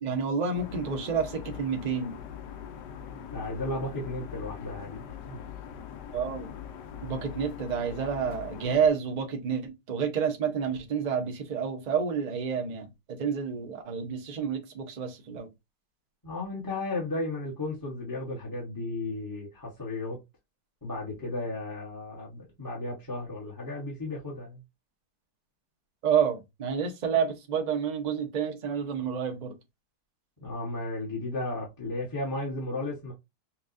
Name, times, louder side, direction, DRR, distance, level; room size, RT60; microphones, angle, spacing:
voice 1, 0.0-2.1 6.1-6.5 7.0-15.5 26.0-29.5, right 6 dB, 75° right, 0.4 m, -29 dB
sound 1, 0.5-8.9, left 8 dB, 75° left, 1.2 m, -42 dB
voice 2, 3.3-5.4 16.2-20.2 20.8-24.6 30.4-33.1, left 2 dB, 15° left, 0.8 m, -34 dB
5.7 x 2.3 x 2.6 m
omnidirectional pair, 2.0 m